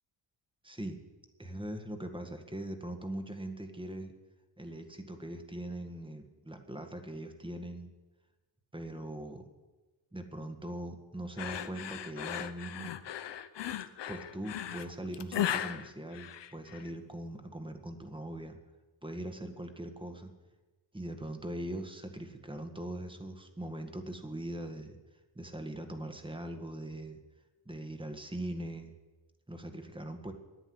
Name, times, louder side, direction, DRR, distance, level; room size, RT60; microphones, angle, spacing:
voice 1, 0.6-1.0 1.4-4.1 4.6-7.9 8.7-9.4 10.1-13.0 14.1-18.6 19.0-20.3 20.9-25.0 25.4-27.2 27.7-28.9 29.5-30.3, right 1 dB, 10° right, 6 dB, 1.7 m, -41 dB
sound 1, 11.4-16.9, left 10 dB, 60° left, 0.8 m, -37 dB
11.0 x 10.0 x 9.6 m, 1.1 s
cardioid pair, 100°, 47 cm